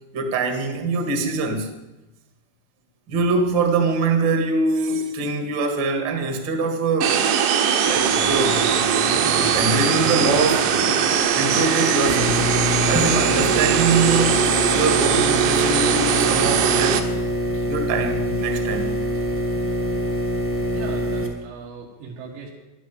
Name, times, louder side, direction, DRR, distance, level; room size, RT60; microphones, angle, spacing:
voice 1, 0.1-1.7 3.1-7.2 7.8-9.0 9.3-11.0 11.3-12.5 12.9-14.4 14.7-17.1 17.7-19.0, right 3 dB, 55° right, 1.3 m, -23 dB
sound 1, 7.0-17.0, right 8 dB, 70° right, 2.0 m, -20 dB
Accelerating revving vroom, 7.9-13.1, left 3 dB, 75° left, 1.3 m, -35 dB
sound 2, 12.0-21.3, equal, 10° right, 0.6 m, -25 dB
voice 2, 20.7-22.5, right 5 dB, 85° right, 3.9 m, -38 dB
11.5 x 10.0 x 9.3 m
omnidirectional pair, 5.0 m